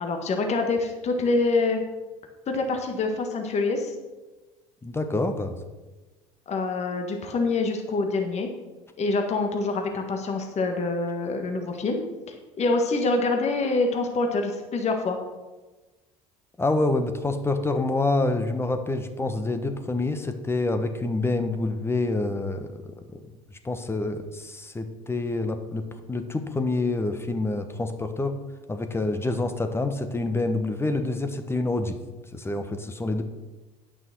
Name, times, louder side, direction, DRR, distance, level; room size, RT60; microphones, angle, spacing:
voice 1, 0.0-1.8 2.5-3.9 6.5-8.5 9.0-12.0 12.6-15.2, left 3 dB, 40° left, 4 dB, 1.6 m, -25 dB
voice 2, 4.8-5.6 16.6-23.2 23.6-28.3 28.7-32.0 32.3-33.2, left 2 dB, 15° left, 7 dB, 1.2 m, -27 dB
9.2 x 6.2 x 6.1 m, 1.2 s
hypercardioid pair, 75°, 17 cm